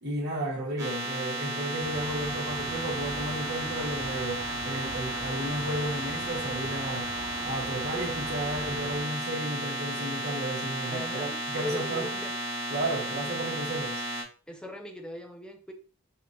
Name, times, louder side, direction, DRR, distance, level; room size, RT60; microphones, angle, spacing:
voice 1, 0.0-7.1 7.4-12.1 12.7-14.0, right 1 dB, 50° right, 1.4 m, -33 dB
sound 1, 0.8-14.2, right 1 dB, 15° right, 1.1 m, -34 dB
sound 2, 1.8-9.0, right 3 dB, 80° right, 0.7 m, -42 dB
voice 2, 10.9-12.3 14.5-15.7, equal, 5° left, 0.5 m, -39 dB
5.1 x 2.5 x 2.7 m
head